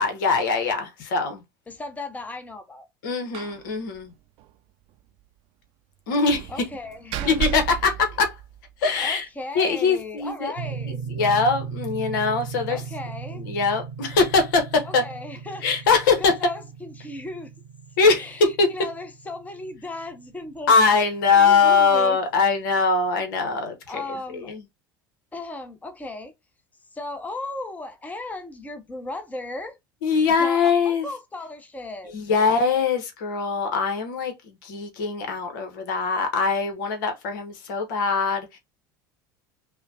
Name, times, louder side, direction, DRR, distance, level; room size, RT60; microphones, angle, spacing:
voice 1, 0.0-1.4 3.0-4.1 6.1-6.5 7.2-8.4 8.8-9.2 9.5-10.5 11.1-12.8 13.4-15.0 15.6-16.3 18.0-18.7 20.7-24.0 24.3-24.6 30.0-31.1 32.1-38.6, left 4 dB, 70° left, 1.0 m, -22 dB
voice 2, 1.7-2.9 6.1-6.2 6.5-7.6 8.9-11.0 12.7-13.4 14.8-15.9 16.2-17.5 18.2-21.1 21.3-22.2 23.9-24.5 25.3-26.3 26.9-29.8 30.4-32.5, left 2 dB, 15° left, 0.9 m, -36 dB
Slam, 3.3-3.7 3.9-4.0 4.4-4.5 6.3-8.9, right 12 dB, 55° right, 0.6 m, -33 dB
sound 1, 10.6-20.5, right 6 dB, 75° right, 0.9 m, -37 dB
5.5 x 2.2 x 2.6 m
hypercardioid pair, 75°, 11 cm